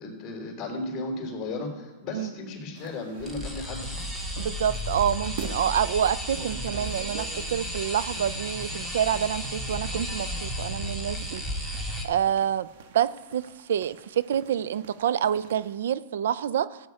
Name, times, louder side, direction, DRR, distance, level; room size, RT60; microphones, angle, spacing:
voice 1, 0.0-3.9, left 2 dB, 30° left, 1 dB, 3.6 m, -35 dB
sound 1, 2.7-15.8, right 8 dB, 65° right, 1.2 m, -46 dB
sound 2, 3.2-12.0, equal, 10° right, 1.7 m, -33 dB
voice 2, 4.4-11.4 12.0-12.7 12.9-13.4 13.7-16.8, right 9 dB, 80° right, 18 dB, 0.4 m, -27 dB
15.0 x 8.4 x 4.8 m, 1.3 s
supercardioid pair, 150°, 0 cm